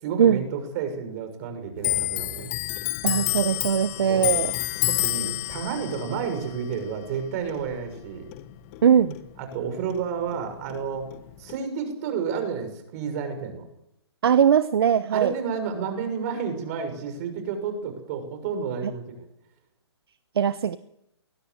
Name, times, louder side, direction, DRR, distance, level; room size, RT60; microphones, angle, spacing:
voice 1, 0.0-2.5 4.1-4.3 4.9-8.3 9.4-11.1 11.4-13.6 15.1-19.3, right 6 dB, 35° right, 8 dB, 6.4 m, -31 dB
Clock, 1.8-8.8 9.1-10.4 10.7-11.5, left 17 dB, 30° left, 1.6 m, -29 dB
voice 2, 3.0-4.5 8.8-9.2 14.2-15.3 20.4-20.8, right 8 dB, 60° right, 14 dB, 1.0 m, -20 dB
21.0 x 20.0 x 8.1 m, 0.83 s
hypercardioid pair, 135°, 14 cm